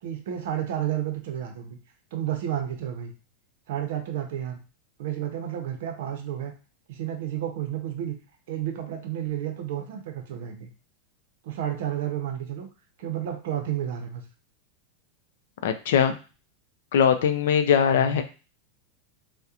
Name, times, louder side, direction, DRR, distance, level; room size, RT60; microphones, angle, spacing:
voice 1, 0.0-1.8 2.1-3.1 3.7-4.6 5.0-6.5 6.9-8.1 8.5-10.7 11.4-12.7 13.0-14.2 17.9-18.2, right 11 dB, 65° right, 4 dB, 0.6 m, -31 dB
voice 2, 15.6-16.1 16.9-18.2, left 8 dB, 70° left, 8 dB, 0.3 m, -21 dB
2.8 x 2.1 x 2.4 m, 0.34 s
supercardioid pair, 165°, 0 cm